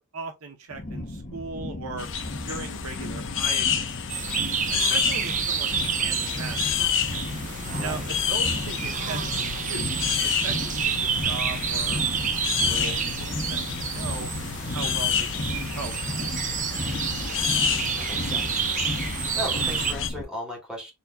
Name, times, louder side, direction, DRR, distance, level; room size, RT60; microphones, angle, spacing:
voice 1, 0.0-2.1 2.4-3.9 4.1-4.2 4.7-6.8 7.8-9.4 9.7-14.3 14.7-16.2, right 4 dB, 70° right, 0.9 m, -38 dB
sound 1, 0.7-20.2, left 1 dB, 35° left, 1.0 m, -35 dB
sound 2, 2.0-20.1, left 8 dB, 60° left, 0.7 m, -30 dB
sound 3, 4.1-19.9, right 7 dB, 35° right, 0.7 m, -29 dB
voice 2, 7.7-8.1 17.5-18.6 19.4-20.9, left 1 dB, 5° right, 2.6 m, -37 dB
4.2 x 4.1 x 2.3 m
head